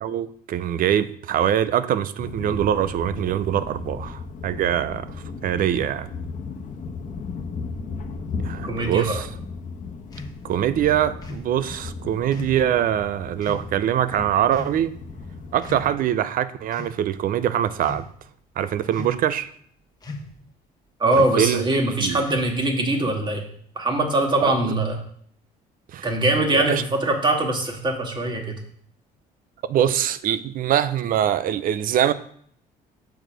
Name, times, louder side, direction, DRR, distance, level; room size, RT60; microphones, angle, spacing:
voice 1, 0.0-5.1 5.4-6.1 8.4-9.3 10.4-14.9 15.5-18.1 18.6-19.5 21.4-21.7 22.0-22.3 24.4-24.7 25.9-26.1 26.5-26.8 29.7-32.1, right 10 dB, 55° right, 0.5 m, -23 dB
sound 1, 2.2-15.9, left 4 dB, 50° left, 1.1 m, -36 dB
voice 2, 8.6-9.2 21.0-23.4 23.8-25.0 26.0-28.6, right 2 dB, 25° right, 1.7 m, -22 dB
sound 2, 10.1-10.4 11.2-11.5 12.3-12.6 13.4-13.7 14.5-14.8 15.6-16.1 16.7-17.0 17.7-18.1 18.9-19.3 20.0-20.4 21.1-21.5 22.2-22.7, left 2 dB, 25° left, 1.2 m, -37 dB
6.9 x 4.6 x 6.1 m
cardioid pair, 110°, 17 cm